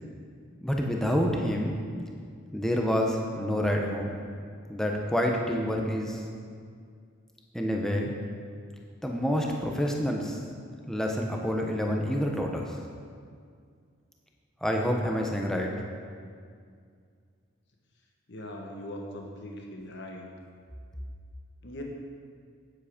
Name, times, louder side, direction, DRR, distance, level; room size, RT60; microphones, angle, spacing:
voice 1, 0.6-1.8 2.5-4.2 4.7-6.2 7.5-8.1 9.0-10.4 10.9-12.8 14.6-15.7, equal, ahead, 0 dB, 0.9 m, -28 dB
voice 2, 18.3-20.3 21.6-21.8, left 1 dB, 55° left, 1 dB, 1.4 m, -40 dB
9.9 x 7.5 x 5.1 m, 2.1 s
head